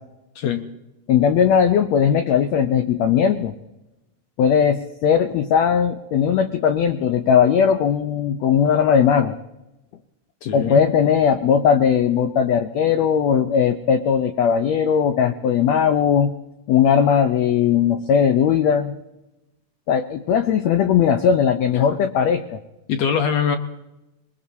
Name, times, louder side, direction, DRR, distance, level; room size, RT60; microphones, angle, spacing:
voice 1, 0.3-0.7 10.4-10.9 22.9-23.6, left 7 dB, 70° left, 6 dB, 1.7 m, -22 dB
voice 2, 1.1-3.5 4.4-9.3 10.5-16.3 16.7-18.9 19.9-22.6, left 7 dB, 85° left, 8 dB, 1.5 m, -18 dB
22.0 x 21.5 x 2.8 m, 0.96 s
omnidirectional pair, 4.0 m